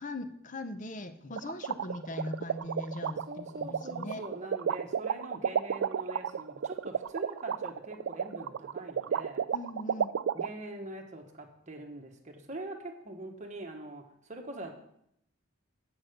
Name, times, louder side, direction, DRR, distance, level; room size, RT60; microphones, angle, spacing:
voice 1, 0.0-4.2 9.5-10.1, left 1 dB, 35° left, 9 dB, 0.6 m, -40 dB
sound 1, 1.4-10.5, right 8 dB, 60° right, 0.3 m, -31 dB
voice 2, 3.3-9.5 10.3-14.7, right 1 dB, 35° right, 2 dB, 1.1 m, -43 dB
7.9 x 6.1 x 6.5 m, 0.76 s
head